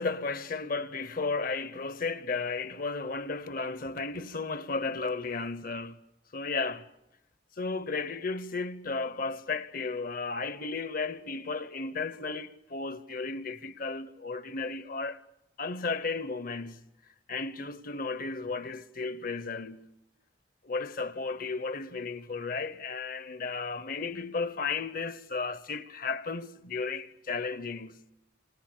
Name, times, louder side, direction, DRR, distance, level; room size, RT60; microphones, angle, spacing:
voice 1, 0.0-6.0 6.3-6.9 7.6-15.2 15.6-16.9 17.3-19.9 20.6-28.0, left 4 dB, 45° left, 1.0 m, -34 dB
29.5 x 27.5 x 6.8 m
head